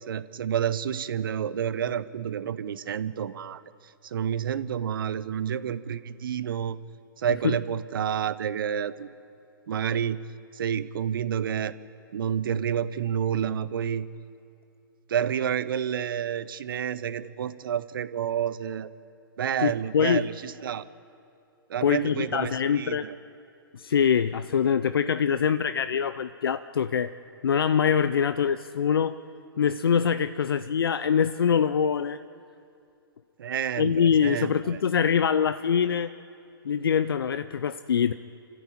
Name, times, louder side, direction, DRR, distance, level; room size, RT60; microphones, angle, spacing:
voice 1, 0.1-3.6 4.0-6.8 7.2-9.1 9.7-10.2 10.5-11.8 12.1-14.1 15.1-18.9 19.4-20.8 21.7-23.1 33.4-34.8, right 8 dB, 65° right, 15 dB, 0.9 m, -29 dB
voice 2, 19.6-20.3 21.8-23.1 23.7-27.1 27.4-29.2 29.6-32.2 33.8-36.1 36.6-38.1, left 7 dB, 75° left, 12 dB, 0.6 m, -24 dB
28.0 x 14.0 x 8.6 m, 2.6 s
hypercardioid pair, 120°, 12 cm